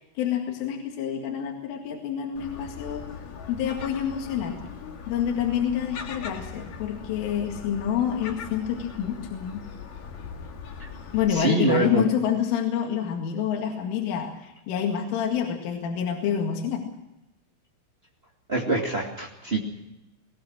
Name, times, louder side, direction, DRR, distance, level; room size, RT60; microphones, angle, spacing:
voice 1, 0.0-3.1 3.5-4.6 5.1-9.7 11.1-16.9, left 8 dB, 75° left, 2 dB, 4.5 m, -27 dB
Gull seagull, 2.4-11.3, left 6 dB, 55° left, 3.0 m, -40 dB
voice 2, 11.3-12.0 18.5-19.6, right 2 dB, 80° right, -1 dB, 0.5 m, -25 dB
21.5 x 20.0 x 6.3 m, 0.96 s
omnidirectional pair, 5.9 m